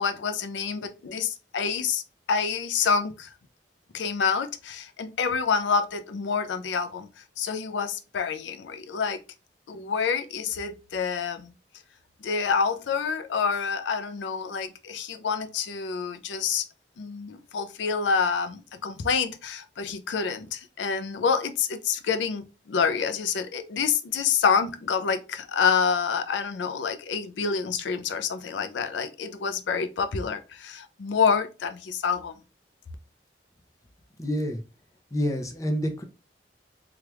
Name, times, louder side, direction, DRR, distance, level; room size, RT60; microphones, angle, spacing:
voice 1, 0.0-2.0 2.3-3.3 3.9-7.1 7.4-9.2 9.7-11.5 12.2-16.6 17.0-32.3, left 6 dB, 90° left, 0.4 m, -27 dB
voice 2, 34.2-34.6 35.1-36.0, equal, 20° left, 0.5 m, -27 dB
3.3 x 2.3 x 2.9 m
head